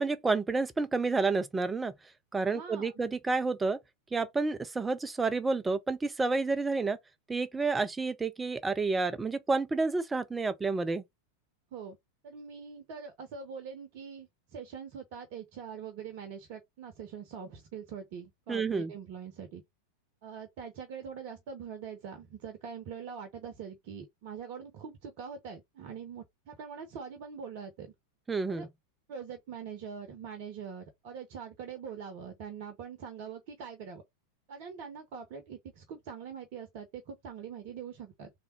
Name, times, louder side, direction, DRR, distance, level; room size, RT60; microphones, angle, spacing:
voice 1, 0.0-1.9 2.3-3.8 4.1-7.0 7.3-11.0 18.5-18.9 28.3-28.7, right 3 dB, 10° right, 0.6 m, -30 dB
voice 2, 2.4-2.9 11.7-12.0 12.2-19.6 20.2-27.9 28.5-28.7 29.1-34.0 34.5-38.3, right 7 dB, 45° right, 0.9 m, -43 dB
3.5 x 3.2 x 4.4 m
figure-of-eight pair, 90°, 0 cm